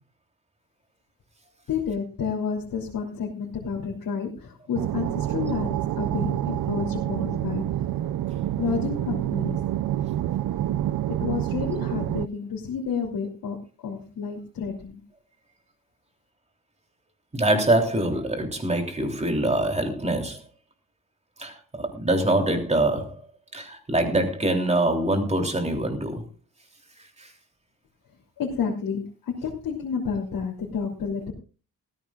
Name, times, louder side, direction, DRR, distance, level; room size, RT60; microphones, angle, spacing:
voice 1, 1.7-7.6 8.6-9.6 11.2-13.6 13.8-15.0 28.4-31.3, left 6 dB, 70° left, -2 dB, 3.2 m, -30 dB
sound 1, 4.7-12.3, right 12 dB, 70° right, 0.6 m, -27 dB
voice 2, 17.3-20.4 21.4-23.1 23.5-26.2 27.2-27.3, right 1 dB, 20° right, 4 dB, 3.2 m, -24 dB
19.0 x 15.0 x 2.4 m, 0.34 s
wide cardioid pair, 165°, 35 cm